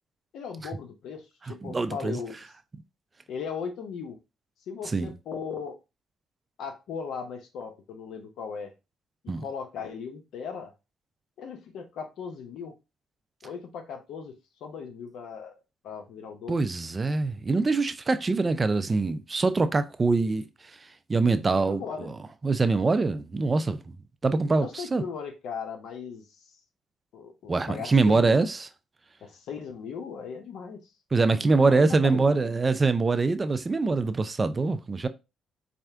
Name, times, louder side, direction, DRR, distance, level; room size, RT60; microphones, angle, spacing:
voice 1, 0.3-2.4 3.3-4.2 4.7-5.8 6.6-8.7 9.2-10.7 11.4-12.7 13.4-15.6 15.8-16.6 21.5-22.1 24.6-26.2 27.1-28.4 29.2-30.8 31.6-32.5, left 6 dB, 80° left, 0.8 m, -38 dB
voice 2, 1.5-2.2 4.9-5.1 9.3-9.4 16.5-20.4 21.1-22.1 22.4-23.8 24.2-25.0 27.5-28.6 31.1-35.1, right 3 dB, 30° right, 0.4 m, -24 dB
4.3 x 2.4 x 3.3 m
cardioid pair, 90°, 0 cm